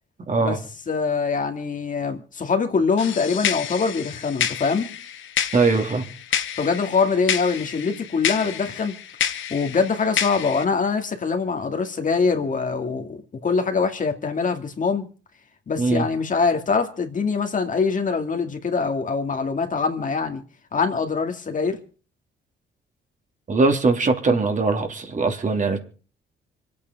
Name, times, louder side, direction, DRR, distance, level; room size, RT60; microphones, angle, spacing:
voice 1, 0.3-0.6 5.5-6.1 15.8-16.1 23.5-25.8, right 3 dB, 40° right, 2.9 m, -21 dB
voice 2, 0.9-4.9 6.6-8.9 9.5-15.1 15.7-20.4 20.7-21.8, left 5 dB, 40° left, 2.2 m, -23 dB
sound 1, 3.0-10.6, left 9 dB, 75° left, 1.4 m, -29 dB
25.5 x 8.7 x 5.3 m
cardioid pair, 90°, 20 cm